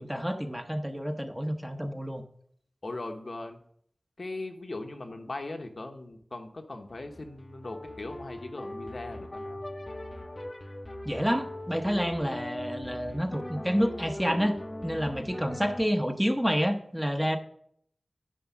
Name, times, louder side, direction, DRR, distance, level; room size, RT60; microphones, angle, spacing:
voice 1, 0.0-2.2 11.0-17.4, equal, 5° right, 5 dB, 0.9 m, -29 dB
voice 2, 2.8-3.6 4.2-9.6, left 2 dB, 55° left, 4 dB, 1.0 m, -39 dB
sound 1, 6.8-15.9, left 1 dB, 30° left, 0.8 m, -40 dB
10.0 x 4.5 x 6.0 m, 0.66 s
wide cardioid pair, 80°, 0 cm